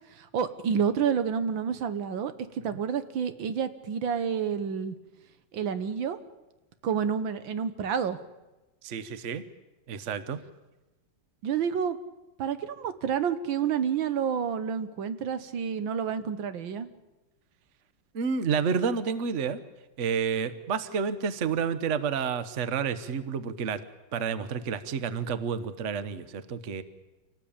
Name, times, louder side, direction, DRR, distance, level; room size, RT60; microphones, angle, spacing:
voice 1, 0.2-2.3 2.6-5.0 5.5-6.2 6.8-8.2 11.4-12.0 12.4-16.9, right 7 dB, 85° right, 11 dB, 1.9 m, -29 dB
voice 2, 8.8-9.4 9.9-10.4 18.1-19.6 20.0-23.8 24.1-26.8, right 6 dB, 45° right, 13 dB, 1.2 m, -30 dB
26.5 x 18.5 x 8.8 m, 1.1 s
omnidirectional pair, 2.0 m